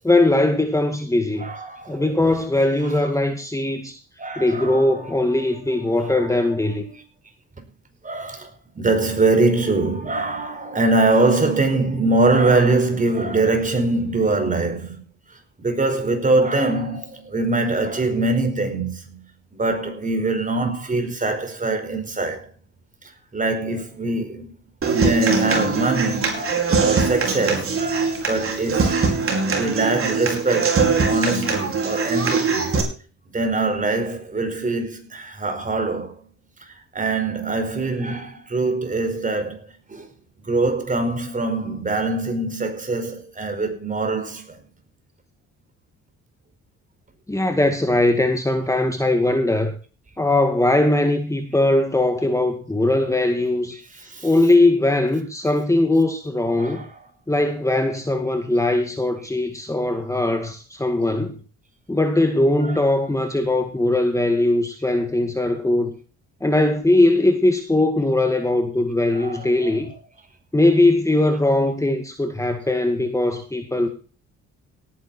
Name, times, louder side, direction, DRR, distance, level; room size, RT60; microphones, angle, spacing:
voice 1, 0.0-1.5 1.9-4.0 4.4-6.8 47.3-49.7 50.2-53.8 54.2-56.9 57.3-61.4 61.9-65.9 66.4-69.9 70.5-73.9, left 2 dB, 10° left, 2.0 m, -20 dB
voice 2, 1.4-3.1 4.2-5.2 5.5-6.9 8.0-15.0 15.3-19.3 19.5-22.5 23.3-24.5 24.9-29.2 29.5-32.8 33.3-36.3 36.6-40.1 40.4-44.6 53.9-54.5 56.6-57.0 62.6-62.9 69.1-70.0, right 2 dB, 25° right, 5.0 m, -23 dB
Human voice / Acoustic guitar, 24.8-32.8, right 4 dB, 45° right, 5.0 m, -22 dB
17.5 x 9.9 x 4.3 m
cardioid pair, 90°, 30 cm